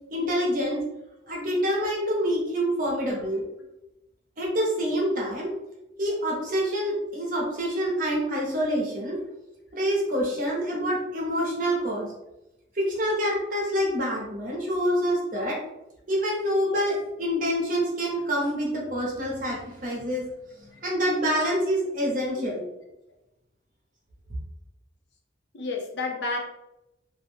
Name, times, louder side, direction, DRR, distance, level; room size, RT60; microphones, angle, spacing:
voice 1, 0.1-0.8 1.3-3.4 4.4-5.5 6.0-9.2 9.7-12.1 12.7-15.6 16.1-20.2 20.8-22.6, equal, 45° right, -3 dB, 0.8 m, -26 dB
voice 2, 25.5-26.4, left 3 dB, 60° left, 0 dB, 0.5 m, -31 dB
2.6 x 2.0 x 3.1 m, 0.93 s
head